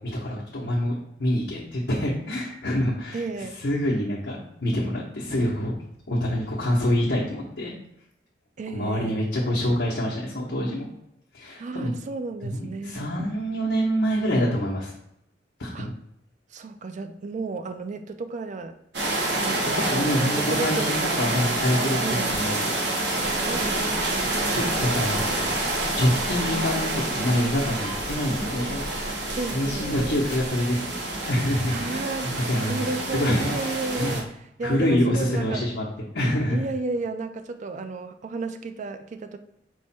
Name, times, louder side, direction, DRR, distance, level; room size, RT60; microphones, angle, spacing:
voice 1, 0.0-3.2 3.6-5.8 6.1-7.7 8.7-10.9 11.3-11.9 12.4-14.9 15.6-15.9 19.9-23.1 24.5-25.2 25.9-28.9 29.5-33.7 34.0-34.1 34.6-35.9 36.1-36.6, equal, 70° left, -6 dB, 0.8 m, -26 dB
voice 2, 3.1-3.6 8.6-9.2 11.6-13.1 15.7-15.9 16.5-18.8 19.4-21.2 22.0-22.4 23.3-24.4 29.3-30.2 31.7-34.3 34.6-35.7 36.5-39.4, right 3 dB, 45° right, 8 dB, 0.3 m, -33 dB
sound 1, 18.9-34.2, right 2 dB, 70° right, 0.9 m, -28 dB
sound 2, 23.1-30.5, equal, 20° left, 1.3 m, -40 dB
4.7 x 2.1 x 4.2 m, 0.79 s
head